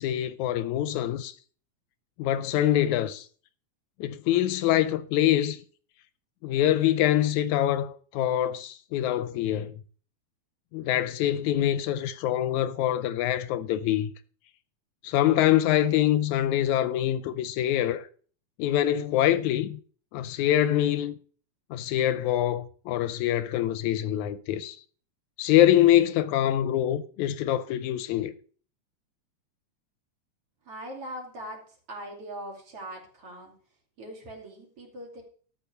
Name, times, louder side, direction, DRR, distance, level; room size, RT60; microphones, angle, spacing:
voice 1, 0.0-1.3 2.2-3.3 4.0-5.6 6.4-9.8 10.7-14.1 15.0-18.1 18.6-19.8 20.1-21.2 21.7-24.8 25.4-28.3, left 12 dB, 80° left, 2.0 m, -24 dB
voice 2, 30.6-33.5 34.0-35.2, right 1 dB, 50° right, 3.6 m, -41 dB
13.0 x 5.1 x 6.6 m
omnidirectional pair, 3.5 m